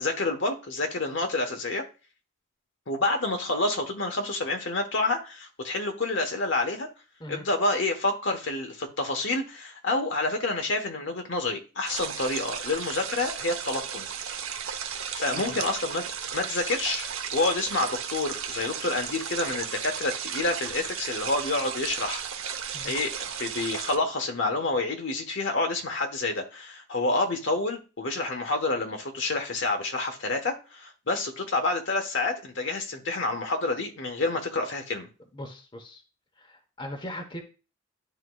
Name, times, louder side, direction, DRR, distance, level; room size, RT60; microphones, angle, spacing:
voice 1, 0.0-1.8 2.9-6.9 7.3-14.1 15.2-22.2 22.8-35.1, left 2 dB, 60° left, 4 dB, 1.1 m, -28 dB
sound 1, 11.9-24.0, right 7 dB, 90° right, 0.8 m, -35 dB
voice 2, 35.3-36.0 36.4-37.4, left 1 dB, 25° left, 3 dB, 0.9 m, -39 dB
11.0 x 3.7 x 2.3 m, 0.33 s
head